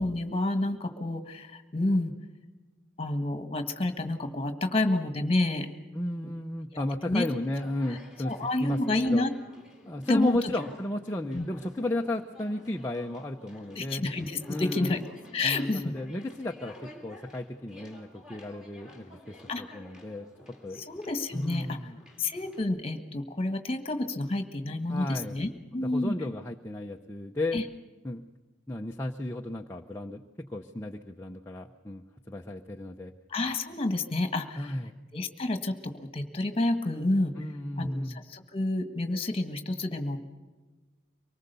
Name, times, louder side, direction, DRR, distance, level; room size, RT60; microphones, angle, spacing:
voice 1, 0.0-2.1 3.0-5.7 6.7-7.3 8.2-9.3 10.1-10.4 11.3-11.5 13.7-15.0 15.3-15.9 19.5-19.6 20.8-21.8 22.2-26.1 27.5-27.6 33.3-34.7 35.1-37.3 37.8-38.0 38.3-40.2, left 2 dB, 30° left, 8 dB, 1.6 m, -29 dB
voice 2, 5.9-8.3 8.6-9.2 9.9-14.0 14.5-15.0 15.4-20.3 20.6-20.8 21.3-22.0 24.9-25.4 25.8-27.6 28.0-28.2 28.7-33.1 34.6-35.0 37.4-38.2, left 1 dB, 15° left, 1 dB, 0.7 m, -34 dB
Conversation, 7.4-22.6, equal, 5° right, 2.5 m, -52 dB
24.5 x 19.5 x 6.8 m, 1.3 s
head